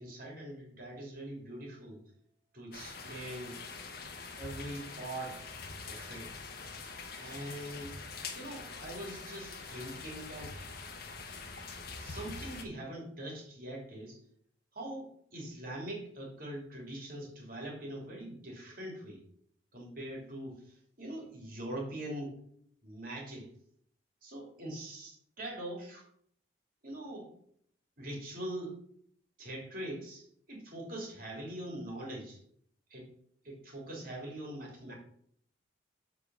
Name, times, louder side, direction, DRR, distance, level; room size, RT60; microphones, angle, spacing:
voice 1, 0.0-2.0 2.5-3.6 4.4-5.4 5.8-6.3 7.1-8.0 8.3-10.6 12.0-14.2 14.7-19.2 19.7-22.4 22.8-23.5 24.2-25.1 25.4-26.0 26.8-27.3 28.0-28.8 29.4-32.4 32.9-33.1 33.4-34.9, right 1 dB, 50° right, -1 dB, 2.9 m, -42 dB
sound 1, 2.7-12.6, left 4 dB, 55° left, 1.1 m, -44 dB
7.7 x 4.6 x 6.2 m, 0.64 s
head